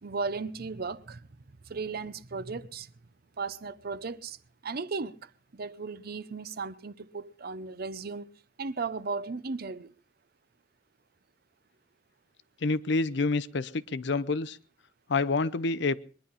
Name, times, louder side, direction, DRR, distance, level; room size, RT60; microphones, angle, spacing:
voice 1, 0.0-1.3 1.7-2.9 3.4-4.4 4.6-8.3 8.6-9.9, right 4 dB, 55° right, 0.7 m, -36 dB
voice 2, 12.6-14.6 15.1-16.0, left 3 dB, 70° left, 0.7 m, -28 dB
22.0 x 10.5 x 5.5 m
head